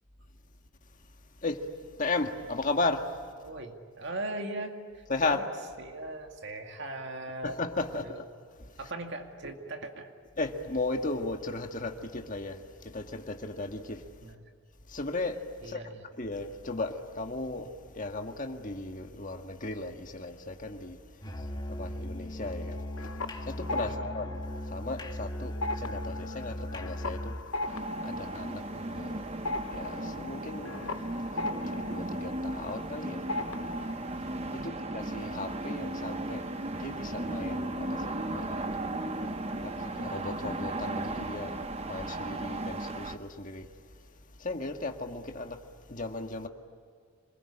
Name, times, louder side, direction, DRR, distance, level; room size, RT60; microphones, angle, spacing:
voice 1, 0.8-3.3 5.1-5.5 7.4-8.2 8.5-8.9 10.4-14.3 14.9-46.5, left 2 dB, 35° left, 1.8 m, -37 dB
voice 2, 3.4-5.4 5.8-7.6 8.8-10.1 14.2-14.4 15.6-15.9 23.8-24.1 34.5-34.8, right 2 dB, 55° right, 2.2 m, -39 dB
Musical instrument, 21.2-27.5, equal, 20° left, 2.2 m, -38 dB
sound 1, 22.7-25.2 25.5-33.0 33.3-34.1, left 2 dB, 70° left, 0.9 m, -38 dB
sound 2, 27.7-43.2, right 1 dB, 30° right, 1.1 m, -36 dB
27.0 x 21.5 x 10.0 m
head